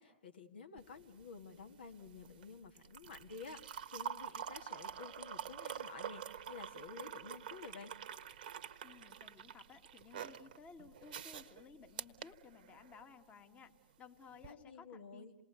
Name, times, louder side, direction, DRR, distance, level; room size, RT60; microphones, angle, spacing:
voice 1, 0.0-7.9 14.4-15.3, left 5 dB, 65° left, 7 dB, 1.7 m, -52 dB
sound 1, 0.8-13.1 14.3-14.5, right 9 dB, 55° right, 1.1 m, -47 dB
voice 2, 8.8-15.3, left 5 dB, 20° left, 6 dB, 1.7 m, -57 dB
28.0 x 19.5 x 9.6 m, 1.0 s
figure-of-eight pair, 110°, 6 cm